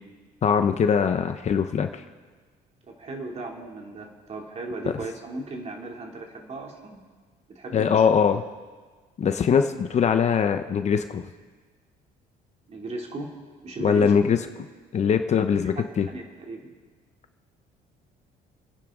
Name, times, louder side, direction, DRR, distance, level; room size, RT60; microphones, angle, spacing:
voice 1, 0.4-2.0 7.7-8.4 9.2-11.2 13.8-14.4 14.9-16.1, left 7 dB, 40° left, 8 dB, 0.9 m, -22 dB
voice 2, 2.9-7.0 7.5-8.0 12.7-13.3 13.6-14.1 15.8-16.7, right 2 dB, 40° right, 1 dB, 2.8 m, -36 dB
29.5 x 10.0 x 3.8 m, 1.4 s
cardioid pair, 110°, 17 cm